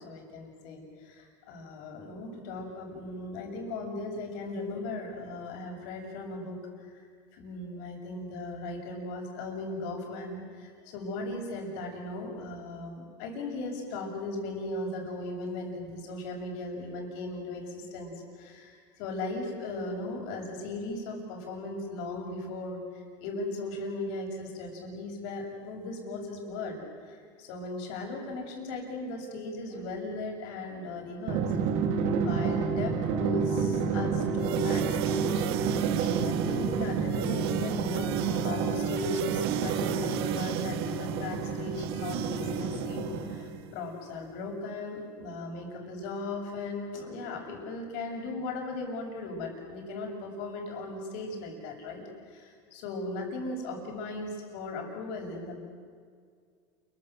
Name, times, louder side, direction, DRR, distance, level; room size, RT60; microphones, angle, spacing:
voice 1, 0.0-7.0 7.3-31.5 32.1-55.6, left 2 dB, 70° left, 2 dB, 7.3 m, -37 dB
Drum, 31.3-43.6, right 5 dB, 60° right, 3.0 m, -29 dB
sound 1, 34.4-43.5, right 15 dB, 80° right, 1.2 m, -37 dB
29.0 x 23.0 x 8.0 m, 2.1 s
supercardioid pair, 135°, 13 cm